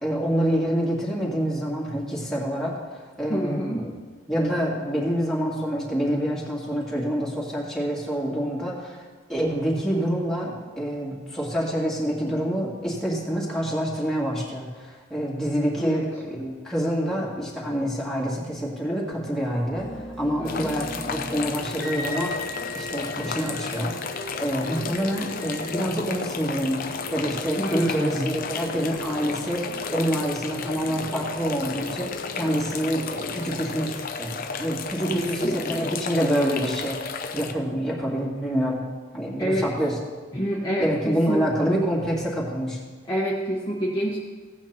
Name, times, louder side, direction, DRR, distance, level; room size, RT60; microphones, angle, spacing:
voice 1, 0.0-2.8 3.2-3.9 4.3-9.0 9.3-19.9 20.2-24.0 24.4-38.8 39.1-39.9 40.8-42.8, equal, ahead, -6 dB, 2.3 m, -27 dB
voice 2, 3.3-3.8 15.8-16.0 20.4-20.8 27.6-28.3 35.1-36.0 39.4-39.7 40.3-41.5 43.1-44.2, equal, 20° left, -6 dB, 1.2 m, -27 dB
sound 1, 19.7-33.9, left 1 dB, 70° left, 1.2 m, -40 dB
sound 2, 20.5-37.5, left 5 dB, 50° left, 0.7 m, -33 dB
Wind instrument woodwind instrument, 21.8-25.7, left 1 dB, 15° right, 1.9 m, -39 dB
16.0 x 9.1 x 2.9 m, 1.4 s
head